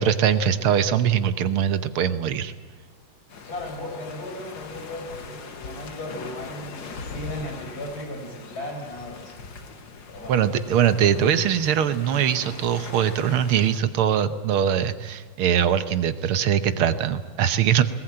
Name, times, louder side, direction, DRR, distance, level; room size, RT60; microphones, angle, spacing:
voice 1, 0.0-2.5 10.3-17.8, right 9 dB, 75° right, 12 dB, 1.8 m, -22 dB
sound 1, 3.3-13.8, left 4 dB, 60° left, 2.2 m, -41 dB
voice 2, 3.4-9.4 10.1-10.4, left 1 dB, 45° left, 1 dB, 5.9 m, -36 dB
20.0 x 19.5 x 8.8 m, 1.5 s
omnidirectional pair, 2.4 m